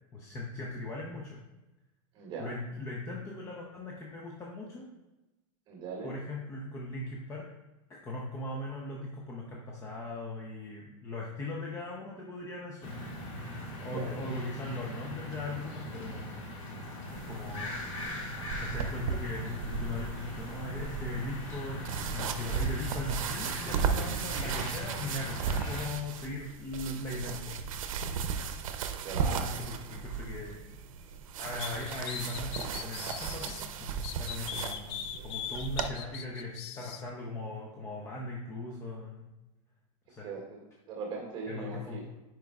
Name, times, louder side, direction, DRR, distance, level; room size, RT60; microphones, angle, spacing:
voice 1, 0.1-1.4 2.4-4.9 6.0-7.5 7.9-13.0 13.8-16.4 17.2-17.7 18.6-27.6 29.3-30.7 31.4-33.9 34.2-39.3 40.1-40.3 41.5-42.1, left 2 dB, 15° left, -2 dB, 0.6 m, -39 dB
voice 2, 2.2-2.5 5.7-6.1 13.8-14.1 29.0-29.4 40.2-40.6 40.9-42.0, right 4 dB, 30° right, -2 dB, 1.8 m, -39 dB
sound 1, 12.8-25.9, left 1 dB, 70° left, 1.8 m, -40 dB
sound 2, 17.1-35.9, right 6 dB, 90° right, 0.6 m, -36 dB
sound 3, 31.6-33.6 34.0-37.0, left 9 dB, 55° left, 0.5 m, -40 dB
10.0 x 4.5 x 2.3 m, 1.1 s
supercardioid pair, 155°, 17 cm